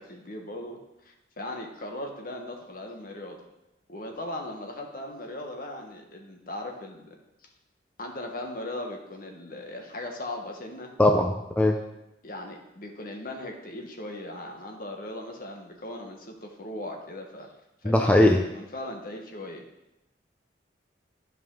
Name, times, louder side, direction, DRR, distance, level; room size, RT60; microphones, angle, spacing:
voice 1, 0.0-3.4 3.9-7.1 8.0-10.9 12.2-17.5 17.8-19.6, left 1 dB, 50° left, 2 dB, 1.3 m, -38 dB
voice 2, 11.0-11.8 17.8-18.4, left 1 dB, 10° left, 3 dB, 0.5 m, -20 dB
12.5 x 5.4 x 3.8 m, 0.90 s
head